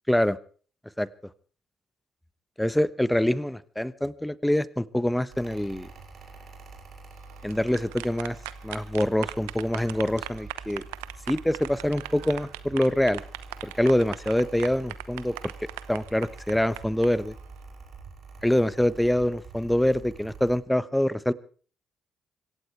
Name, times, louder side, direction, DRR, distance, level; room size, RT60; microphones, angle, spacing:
voice 1, 0.1-0.4 1.0-1.1 2.6-5.9 7.4-8.4 8.6-10.8 11.3-13.2 13.6-15.3 15.9-17.3 18.4-21.3, left 1 dB, 5° left, 16 dB, 1.1 m, -25 dB
Mechanical fan, 5.3-20.6, right 3 dB, 55° right, 5.1 m, -46 dB
sound 1, 7.3-17.1, right 20 dB, 75° right, 0.9 m, -39 dB
26.0 x 15.5 x 3.4 m, 0.43 s
hypercardioid pair, 45°, 0 cm